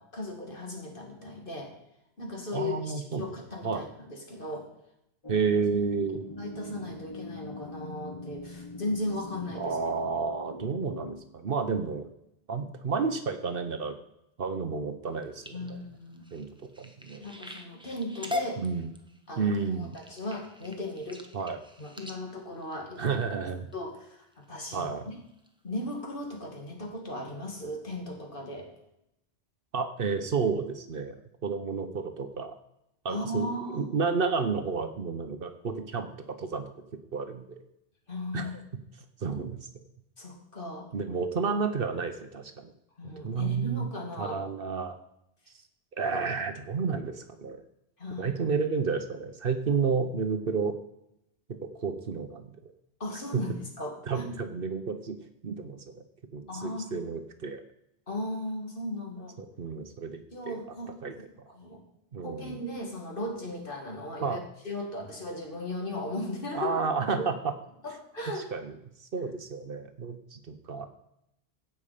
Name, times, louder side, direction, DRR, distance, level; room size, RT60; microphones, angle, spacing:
voice 1, 0.1-1.7 2.2-4.7 6.4-9.8 15.5-16.2 17.2-18.6 19.3-19.5 19.8-21.5 21.8-23.0 23.7-25.1 25.6-28.7 33.1-33.9 38.1-38.5 40.2-40.9 43.0-44.4 48.0-48.3 53.0-54.4 56.5-57.1 58.1-59.4 60.3-61.0 61.5-61.8 62.2-64.4 64.6-66.8 67.1-67.3 67.8-68.5, left 1 dB, 50° left, 1 dB, 2.2 m, -36 dB
voice 2, 2.5-3.2 3.6-3.8 5.3-6.2 9.6-12.1 12.5-14.0 14.4-15.8 16.3-16.5 16.8-17.2 18.6-18.9 19.4-20.0 21.3-21.6 23.0-23.6 24.7-25.1 29.7-31.2 31.4-32.6 33.0-33.5 33.7-36.7 37.1-37.6 38.3-38.5 39.2-39.6 40.9-42.7 43.2-43.9 44.2-45.0 45.9-47.6 48.2-50.8 51.6-52.6 53.3-53.4 54.0-55.2 55.4-55.8 56.3-57.6 59.4-60.6 61.0-61.1 62.1-62.6 64.2-64.4 66.5-67.5 68.4-68.7 69.0-70.9, right 5 dB, 55° right, 8 dB, 1.0 m, -31 dB
sound 1, 5.2-11.2, left 2 dB, 25° left, 1.0 m, -42 dB
sound 2, 15.0-23.7 24.3-24.7 25.1-25.5 25.9-26.0 26.3-26.4, left 2 dB, 5° right, 0.9 m, -41 dB
16.0 x 5.6 x 5.0 m, 0.79 s
omnidirectional pair, 1.1 m